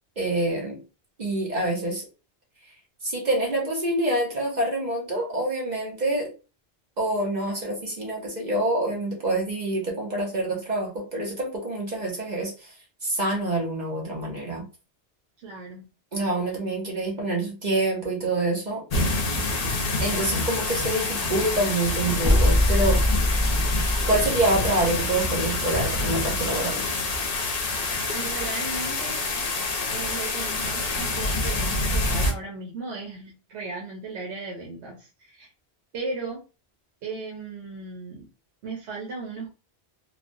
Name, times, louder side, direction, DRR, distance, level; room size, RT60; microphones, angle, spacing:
voice 1, 0.2-0.8 1.2-2.0 3.0-6.3 7.0-12.7 13.0-14.6 16.1-18.8 20.0-23.0 24.1-26.8, right 1 dB, 45° right, -2 dB, 0.8 m, -26 dB
voice 2, 15.4-15.8 28.1-29.2 29.9-35.5 35.9-36.4 37.0-38.2 38.6-39.5, right 3 dB, 85° right, -1 dB, 1.0 m, -36 dB
sound 1, 18.9-32.3, left 2 dB, 45° left, 0.6 m, -27 dB
sound 2, 22.2-24.3, left 1 dB, ahead, 1.0 m, -22 dB
3.2 x 2.1 x 2.5 m, 0.33 s
omnidirectional pair, 1.1 m